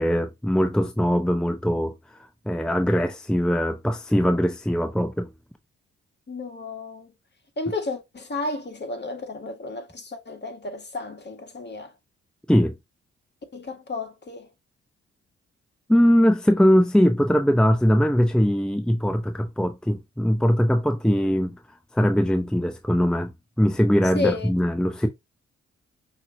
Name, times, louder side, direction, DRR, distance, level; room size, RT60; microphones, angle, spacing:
voice 1, 0.0-5.3 12.5-12.7 15.9-23.3 23.6-25.1, equal, 5° left, 0.7 m, -21 dB
voice 2, 6.3-7.1 7.6-11.9 13.5-14.5 24.2-24.5, left 3 dB, 35° left, 1.8 m, -32 dB
5.6 x 3.1 x 2.7 m
supercardioid pair, 45°, 30 cm